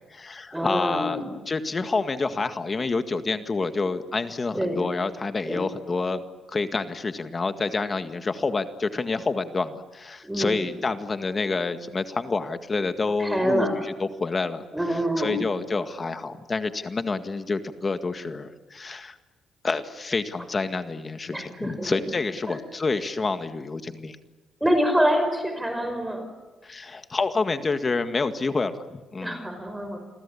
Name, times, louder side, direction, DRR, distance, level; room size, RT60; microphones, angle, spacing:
voice 1, 0.0-1.2 1.5-6.2 6.5-14.6 15.2-19.2 19.6-24.2 26.6-28.8 29.1-29.4, left 3 dB, 30° left, 9 dB, 1.9 m, -28 dB
voice 2, 0.5-1.3 4.5-4.9 5.5-5.6 10.2-10.7 13.2-13.8 14.7-15.4 21.3-22.0 22.5-22.6 24.6-26.3 29.2-30.0, equal, 10° right, 7 dB, 5.3 m, -26 dB
29.0 x 22.0 x 8.7 m, 1.3 s
cardioid pair, 90°, 0 cm